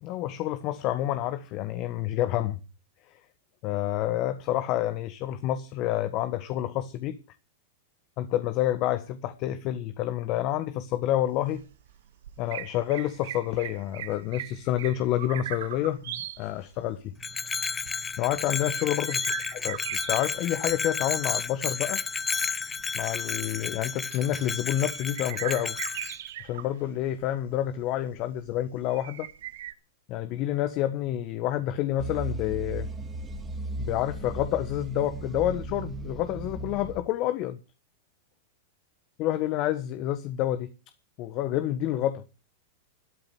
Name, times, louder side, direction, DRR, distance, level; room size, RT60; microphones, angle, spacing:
voice 1, 0.0-2.6 3.1-3.2 3.6-7.2 8.2-11.7 12.4-17.1 18.2-19.3 19.5-19.8 20.1-22.0 22.9-25.8 26.4-29.3 30.1-32.9 33.8-37.6 39.2-40.7 41.2-42.2, left 13 dB, 45° left, 1.4 m, -28 dB
sound 1, 11.3-29.7, right 12 dB, 70° right, 1.5 m, -41 dB
Bell, 17.2-26.2, left 5 dB, 20° left, 0.8 m, -32 dB
sound 2, 32.0-37.0, right 2 dB, 20° right, 3.5 m, -36 dB
12.5 x 12.0 x 7.9 m
hypercardioid pair, 105°, 0 cm